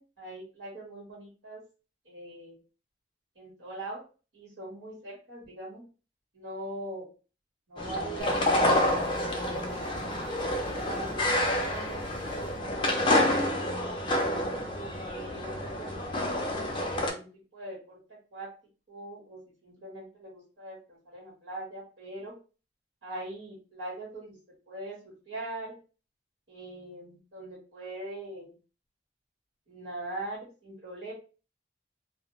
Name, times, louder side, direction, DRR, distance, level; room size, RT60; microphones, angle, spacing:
voice 1, 0.0-1.6 2.0-2.6 3.3-4.0 4.3-5.8 6.3-7.1 7.7-10.2 10.7-12.1 12.8-14.3 15.1-16.3 16.6-17.3 17.5-18.5 18.9-22.4 23.0-24.4 24.7-25.7 26.5-28.5 29.7-31.1, right 1 dB, 75° right, -5 dB, 1.2 m, -41 dB
sound 1, 7.8-17.1, left 1 dB, 25° left, 0.4 m, -28 dB
sound 2, 8.2-12.6, right 1 dB, 30° right, 1.0 m, -47 dB
2.4 x 2.0 x 3.0 m, 0.35 s
head